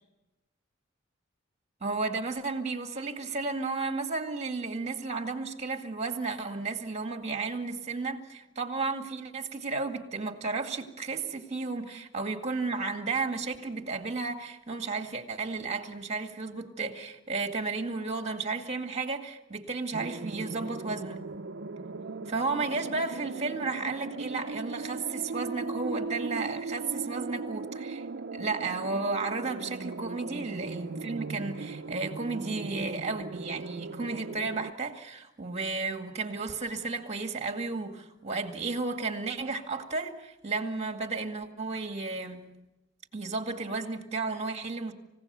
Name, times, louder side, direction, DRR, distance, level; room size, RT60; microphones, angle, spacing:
voice 1, 1.8-21.4 22.3-28.1 28.3-42.5 43.1-44.9, right 3 dB, 35° right, 2.1 m, -33 dB
sound 1, 19.9-34.7, right 3 dB, 55° right, 0.7 m, -38 dB
28.5 x 16.5 x 7.0 m
head